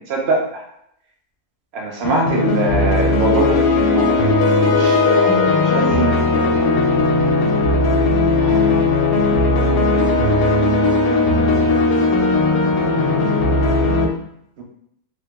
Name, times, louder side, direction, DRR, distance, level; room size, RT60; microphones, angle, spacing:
voice 1, 0.1-0.6 1.7-4.1 4.7-6.6 8.4-10.9 12.4-12.5 14.6-14.7, right 2 dB, 60° right, 0 dB, 0.7 m, -24 dB
sound 1, 2.0-14.0, left 2 dB, 90° left, 1.2 m, -17 dB
3.4 x 2.2 x 2.9 m, 0.72 s
omnidirectional pair, 1.7 m